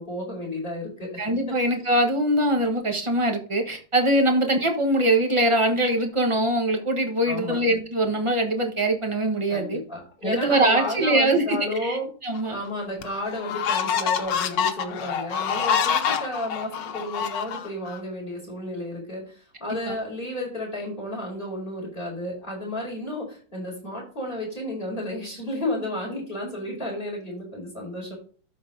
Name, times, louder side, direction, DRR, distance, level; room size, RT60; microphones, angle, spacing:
voice 1, 0.0-1.2 1.5-1.6 7.2-7.6 9.5-12.1 12.5-28.2, left 1 dB, 30° left, -3 dB, 5.1 m, -32 dB
voice 2, 1.2-9.8 10.2-12.0 12.2-12.6 19.7-19.9, right 1 dB, 20° right, 3 dB, 1.1 m, -22 dB
sound 1, 12.3-12.4 13.0-18.0, left 7 dB, 75° left, 1.5 m, -26 dB
12.5 x 4.3 x 3.9 m, 0.41 s
omnidirectional pair, 2.0 m